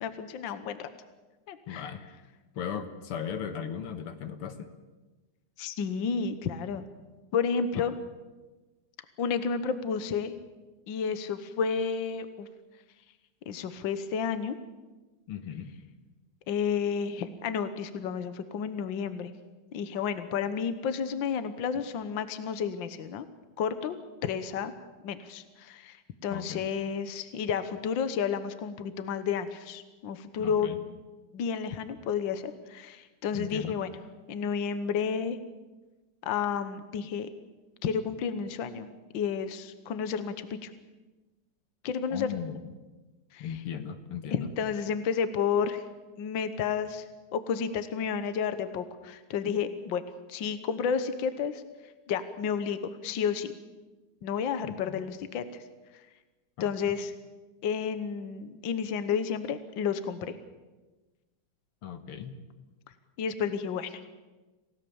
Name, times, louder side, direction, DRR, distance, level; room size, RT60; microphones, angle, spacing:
voice 1, 0.0-0.9 1.5-1.9 5.6-6.9 7.3-7.9 9.2-10.3 10.9-12.5 13.5-14.6 16.5-19.3 19.7-23.3 23.6-24.0 24.2-24.7 25.0-30.8 31.3-33.9 34.3-35.4 36.2-37.3 37.8-38.9 39.1-40.7 41.8-42.3 43.3-43.5 44.3-45.8 46.2-47.0 47.3-50.0 50.3-51.6 52.1-53.5 54.2-55.6 55.9-56.0 56.6-57.1 57.6-60.4 63.2-64.0, left 6 dB, 65° left, 11 dB, 1.7 m, -31 dB
voice 2, 1.7-2.0 2.5-4.7 7.7-7.8 15.3-15.7 26.3-26.6 30.4-30.8 33.3-33.8 42.1-42.6 43.4-44.5 54.6-55.0 61.8-62.4, left 8 dB, 85° left, 8 dB, 2.4 m, -37 dB
28.0 x 16.5 x 7.1 m, 1.2 s
omnidirectional pair, 2.4 m